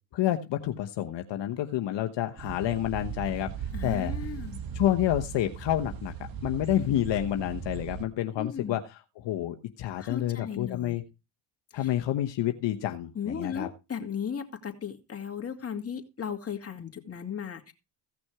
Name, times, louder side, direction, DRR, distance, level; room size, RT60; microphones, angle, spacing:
voice 1, 0.1-4.1 4.7-6.1 6.4-11.0 11.7-13.7, left 12 dB, 60° left, 6 dB, 1.1 m, -29 dB
sound 1, 2.4-8.1, right 7 dB, 45° right, 1.9 m, -37 dB
voice 2, 3.7-4.6 8.4-8.7 10.0-11.0 11.7-11.9 13.1-17.7, left 7 dB, 30° left, 4 dB, 2.3 m, -36 dB
16.0 x 6.1 x 4.7 m, 0.28 s
supercardioid pair, 90°, 48 cm